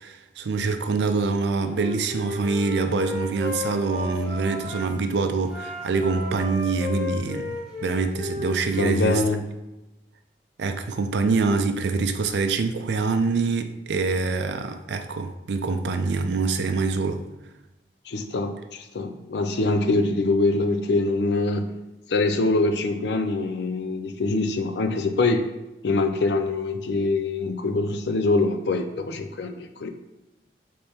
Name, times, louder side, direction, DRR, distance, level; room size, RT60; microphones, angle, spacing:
voice 1, 0.0-9.2 10.6-17.2, right 4 dB, 80° right, 8 dB, 0.4 m, -25 dB
Wind instrument woodwind instrument, 1.6-4.9 5.4-9.0, left 3 dB, ahead, 1.1 m, -34 dB
voice 2, 8.8-9.4 18.1-21.7 22.1-25.5 25.8-29.9, left 3 dB, 75° left, 7 dB, 0.4 m, -24 dB
3.4 x 3.3 x 4.2 m, 1.0 s
head